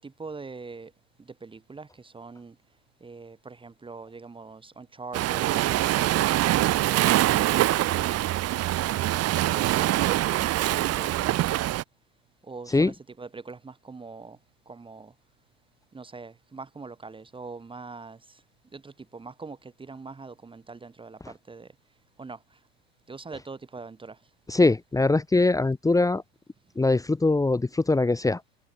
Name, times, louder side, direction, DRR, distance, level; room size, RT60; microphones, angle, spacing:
voice 1, 0.2-0.9 1.7-1.8 2.1-2.5 3.0-3.3 3.6-5.8 6.9-7.1 9.6-11.3 12.5-12.7 13.5-13.6 13.9-14.3 14.8-15.0 15.9-18.2 19.2-19.6 19.9-21.2 21.5-21.6 22.2-22.4 23.1-23.9, right 4 dB, 10° right, 1.7 m, -41 dB
Waves surf, 5.1-11.8, right 15 dB, 35° right, 1.8 m, -24 dB
voice 2, 24.5-26.2 26.7-28.4, left 3 dB, 10° left, 1.6 m, -22 dB
supercardioid pair, 115°, 40 cm